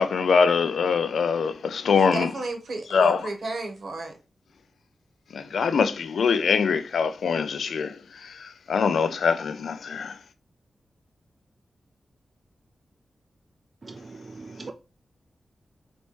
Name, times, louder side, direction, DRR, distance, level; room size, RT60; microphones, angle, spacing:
voice 1, 0.0-2.3 2.9-3.2 5.3-8.0 8.2-10.1, left 5 dB, 85° left, 0.4 m, -23 dB
voice 2, 2.0-4.2, right 2 dB, 60° right, 1.0 m, -33 dB
voice 3, 13.8-14.7, right 3 dB, 35° right, 0.3 m, -40 dB
4.0 x 3.3 x 3.1 m
wide cardioid pair, 155°, 0 cm